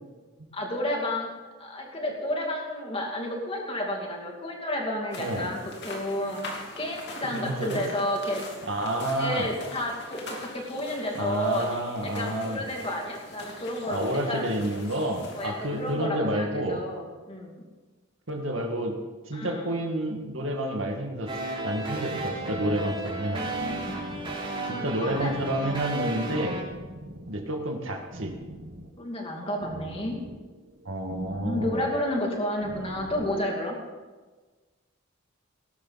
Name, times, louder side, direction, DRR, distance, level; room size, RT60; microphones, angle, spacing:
voice 1, 0.5-1.3 1.6-8.4 9.2-11.7 12.0-14.5 15.3-17.6 19.3-19.7 23.3-23.9 24.6-25.4 29.0-30.2 31.1-33.8, left 1 dB, 25° left, 0 dB, 2.5 m, -31 dB
sound 1, 5.1-16.0, left 2 dB, 55° left, 2.6 m, -43 dB
voice 2, 5.2-5.6 7.3-7.8 8.6-9.5 11.1-12.6 13.9-16.8 18.3-19.0 19.3-21.3 21.6-23.4 24.7-26.6 27.3-28.3 30.9-31.8, right 1 dB, 70° right, 3 dB, 2.0 m, -29 dB
sound 2, 21.3-26.6, right 2 dB, 25° right, 3.2 m, -33 dB
sound 3, 22.1-33.5, right 1 dB, 50° right, 1.2 m, -44 dB
19.0 x 12.0 x 4.1 m, 1.3 s
head